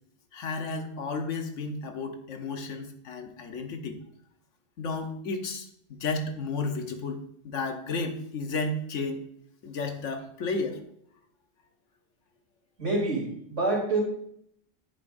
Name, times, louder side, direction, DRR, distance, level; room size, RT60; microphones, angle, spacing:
voice 1, 0.3-4.0 4.8-9.2 9.6-10.8, left 3 dB, 85° left, 6 dB, 1.3 m, -33 dB
voice 2, 12.8-14.0, right 2 dB, 70° right, -3 dB, 3.5 m, -27 dB
10.0 x 8.0 x 2.6 m, 0.69 s
omnidirectional pair, 1.2 m